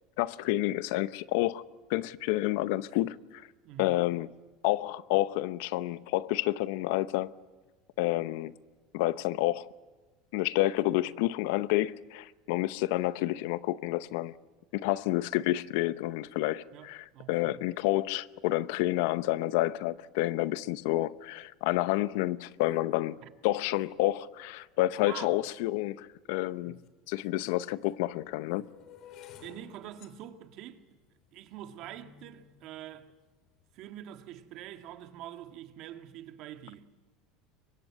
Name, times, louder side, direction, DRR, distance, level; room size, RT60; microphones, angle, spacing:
voice 1, 0.2-1.6 1.9-3.4 3.8-4.3 4.6-7.3 8.0-8.5 8.9-9.7 10.3-14.3 14.7-26.8 27.1-28.7, left 16 dB, 75° left, 0.7 m, -29 dB
voice 2, 3.6-4.0 16.7-17.7 23.2-23.3 25.0-25.3 26.7-26.8 29.4-30.8 31.3-33.1 33.7-36.9, right 12 dB, 55° right, 1.8 m, -45 dB
sound 1, 26.8-26.9 27.7-33.8 34.5-34.9 35.1-35.5, left 9 dB, 50° left, 2.9 m, -55 dB
23.5 x 21.5 x 8.5 m
supercardioid pair, 130°, 0 cm